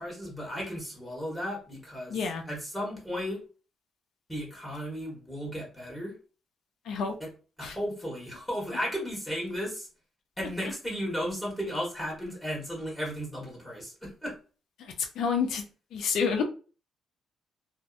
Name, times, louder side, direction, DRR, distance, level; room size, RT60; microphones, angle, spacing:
voice 1, 0.0-2.2 2.5-3.4 4.3-6.1 7.2-7.3 7.6-9.9 10.4-14.3, equal, 10° left, -4 dB, 1.2 m, -34 dB
voice 2, 2.1-2.4 6.9-7.1 7.6-7.8 14.8-15.6 15.9-16.4, left 6 dB, 75° left, 4 dB, 0.4 m, -29 dB
2.6 x 2.0 x 2.4 m, 0.35 s
cardioid pair, 90°, 0 cm